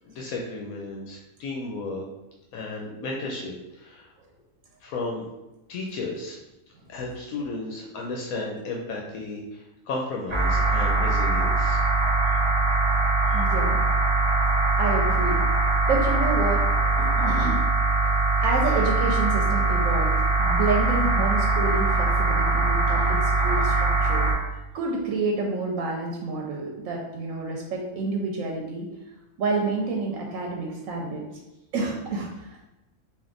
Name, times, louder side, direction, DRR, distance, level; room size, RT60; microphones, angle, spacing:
voice 1, 0.0-2.0 2.5-4.1 4.8-5.2 5.7-6.4 6.9-11.9, left 3 dB, 85° left, -1 dB, 1.1 m, -34 dB
sound 1, 10.3-24.3, right 3 dB, 25° right, 0.8 m, -22 dB
voice 2, 13.3-13.9 14.8-15.4 15.9-17.6 18.0-18.1 18.4-20.1 20.4-24.3 24.7-28.9 29.4-31.3 31.7-32.6, right 3 dB, 75° right, 0 dB, 1.0 m, -29 dB
3.5 x 2.5 x 3.8 m, 0.99 s
omnidirectional pair, 1.4 m